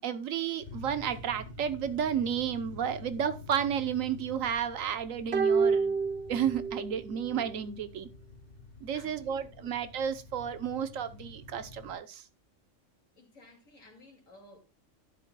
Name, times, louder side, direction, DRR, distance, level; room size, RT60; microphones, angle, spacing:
voice 1, 0.0-6.0 6.3-8.1 8.8-12.2, right 8 dB, 80° right, 1.2 m, -32 dB
sound 1, 0.6-11.9, left 3 dB, 65° left, 2.9 m, -48 dB
sound 2, 5.3-7.0 7.3-7.4, right 5 dB, 55° right, 1.1 m, -27 dB
voice 2, 8.9-9.7 13.2-14.6, left 2 dB, 80° left, 3.0 m, -55 dB
12.0 x 9.9 x 2.3 m
omnidirectional pair, 1.4 m